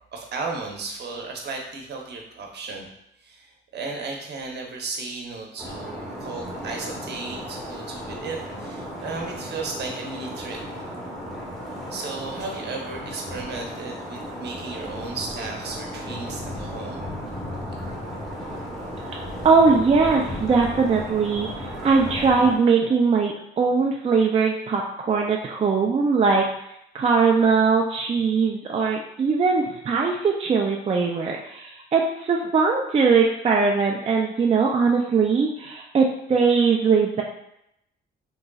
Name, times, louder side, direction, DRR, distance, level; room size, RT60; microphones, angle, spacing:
voice 1, 0.1-2.9 3.2-10.8 11.9-17.1, right 3 dB, 55° right, 1 dB, 0.8 m, -35 dB
sound 1, 5.6-22.5, equal, ahead, 1.1 m, -35 dB
voice 2, 19.4-26.4 26.9-37.2, right 5 dB, 30° right, 0 dB, 0.4 m, -20 dB
3.7 x 3.0 x 2.3 m, 0.79 s
cardioid pair, 90°, 20 cm